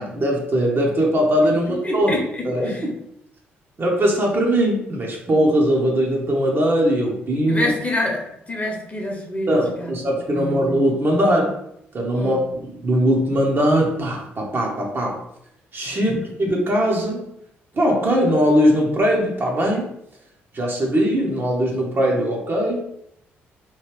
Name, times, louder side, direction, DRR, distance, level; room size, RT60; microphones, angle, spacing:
voice 1, 0.0-2.1 2.4-3.0 3.8-7.7 9.5-11.6 11.9-12.4 12.7-15.2 15.7-17.3 17.7-19.9 20.5-22.8, equal, 35° right, -1 dB, 0.9 m, -20 dB
voice 2, 1.7-2.9 7.5-9.9 10.3-10.5 12.1-12.4 15.9-16.3, left 1 dB, 25° left, 0 dB, 1.0 m, -27 dB
3.0 x 2.8 x 3.2 m, 0.75 s
figure-of-eight pair, 45°, 6 cm